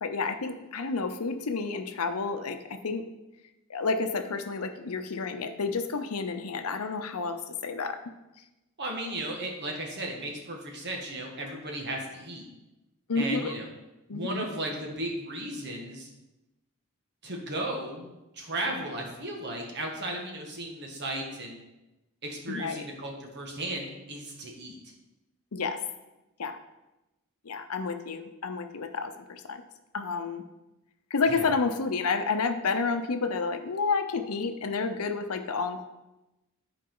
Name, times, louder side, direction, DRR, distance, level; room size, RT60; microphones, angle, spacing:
voice 1, 0.0-3.0 3.7-7.4 7.6-8.0 13.1-13.5 14.1-14.5 22.5-22.9 25.5-25.8 26.4-26.6 27.4-29.6 29.9-30.4 31.1-35.8, left 4 dB, 85° left, 7 dB, 0.7 m, -30 dB
voice 2, 8.8-12.5 13.1-13.7 14.1-16.1 17.2-21.6 22.2-24.8 31.3-31.5, right 1 dB, 50° right, 1 dB, 1.6 m, -35 dB
12.0 x 4.8 x 3.9 m, 1.0 s
head